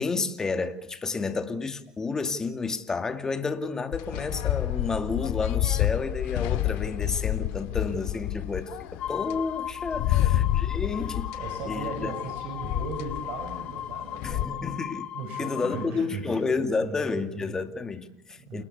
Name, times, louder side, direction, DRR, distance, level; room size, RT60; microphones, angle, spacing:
voice 1, 0.0-11.3 11.7-12.1 14.2-15.1 15.4-18.6, left 4 dB, 20° left, 2.5 m, -31 dB
sound 1, 3.9-14.5, left 14 dB, 65° left, 2.1 m, -29 dB
sound 2, 9.0-15.9, left 10 dB, 45° left, 2.5 m, -36 dB
voice 2, 10.0-10.5 11.0-14.9 15.1-17.6 18.4-18.7, right 4 dB, 55° right, 5.7 m, -38 dB
29.0 x 20.0 x 8.4 m
hypercardioid pair, 85°, 3 cm